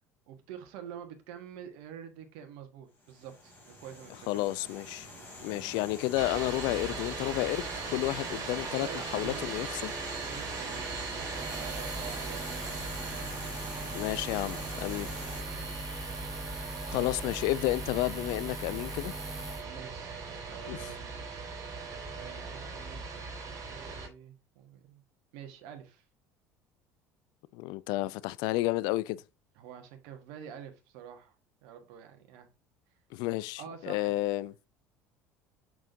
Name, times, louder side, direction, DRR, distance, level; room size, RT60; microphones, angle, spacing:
voice 1, 0.3-4.7 5.4-5.6 8.8-9.7 10.2-13.6 15.5-15.7 16.9-17.1 19.6-21.4 22.1-25.0 25.3-26.0 29.5-31.4 31.6-32.5 33.6-34.2, right 8 dB, 65° right, 1.6 m, -48 dB
sound 1, 3.0-15.4, left 1 dB, 20° left, 3.3 m, -46 dB
voice 2, 4.3-5.1 5.4-8.9 9.1-9.9 13.9-15.1 16.9-19.1 20.7-20.8 27.5-29.2 33.1-34.5, left 18 dB, 60° left, 0.4 m, -31 dB
sound 2, 6.1-24.1, right 4 dB, 45° right, 3.7 m, -39 dB
Buzz, 11.3-19.6, right 1 dB, 5° right, 1.3 m, -41 dB
6.2 x 6.2 x 2.7 m
hypercardioid pair, 65°, 8 cm